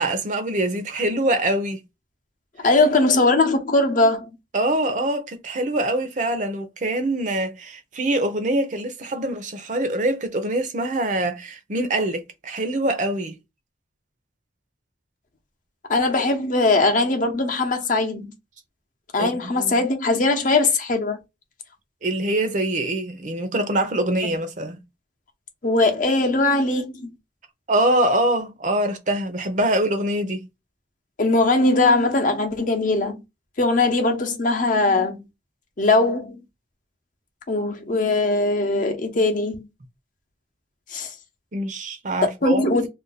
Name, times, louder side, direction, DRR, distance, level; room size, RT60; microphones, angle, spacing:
voice 1, 0.0-1.8 4.5-13.4 19.2-19.7 22.0-24.8 27.7-30.5 41.5-42.9, right 1 dB, 40° right, 0.6 m, -24 dB
voice 2, 2.6-4.3 15.9-18.3 19.1-21.2 25.6-27.1 31.2-33.2 33.6-35.2 35.8-36.4 37.5-39.7 40.9-41.1 42.4-42.9, left 2 dB, 45° left, 0.7 m, -20 dB
2.6 x 2.2 x 3.9 m
head